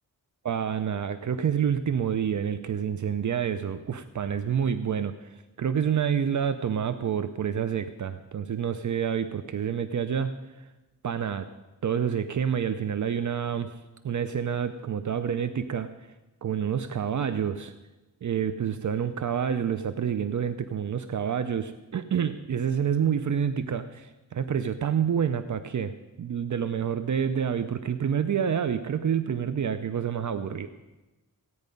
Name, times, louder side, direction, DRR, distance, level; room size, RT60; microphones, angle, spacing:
voice 1, 0.4-10.3 11.0-11.5 11.8-13.8 14.0-15.9 16.4-17.7 18.2-25.9 26.2-30.7, right 8 dB, 60° right, 10 dB, 0.6 m, -28 dB
16.0 x 9.5 x 5.3 m, 1.1 s
wide cardioid pair, 90°, 33 cm